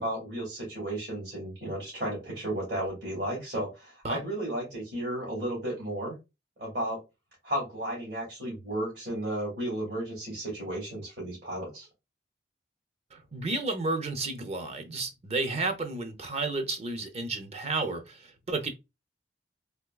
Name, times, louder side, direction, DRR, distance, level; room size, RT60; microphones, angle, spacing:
voice 1, 0.0-6.1 6.6-7.0 7.4-11.9, right 1 dB, 70° right, 2.2 m, -33 dB
voice 2, 13.1-18.7, right 3 dB, 35° right, 0.6 m, -32 dB
3.5 x 3.1 x 2.2 m
head